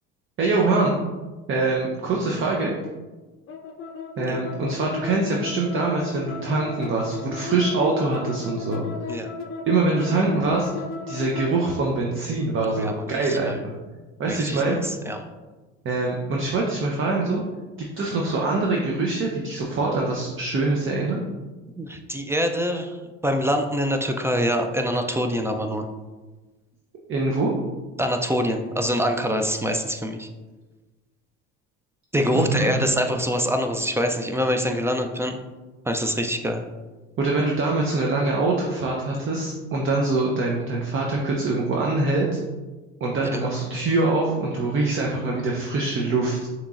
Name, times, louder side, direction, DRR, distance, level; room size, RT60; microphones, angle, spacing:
voice 1, 0.4-1.0 1.5-2.7 4.2-9.2 9.6-10.7 11.1-13.7 14.2-14.8 15.8-17.4 17.8-21.2 27.1-27.5 32.3-32.9 37.2-42.4 43.0-46.5, right 3 dB, 35° right, -1 dB, 0.7 m, -24 dB
sound 1, 3.5-11.7, left 4 dB, 40° left, 0.6 m, -35 dB
voice 2, 12.7-13.6 14.3-14.6 15.1-15.2 21.8-23.0 23.2-25.9 28.0-30.3 32.1-35.4 35.9-36.6 43.3-43.5, equal, 10° right, 5 dB, 0.3 m, -25 dB
6.4 x 3.1 x 2.4 m, 1.2 s
supercardioid pair, 85°, 34 cm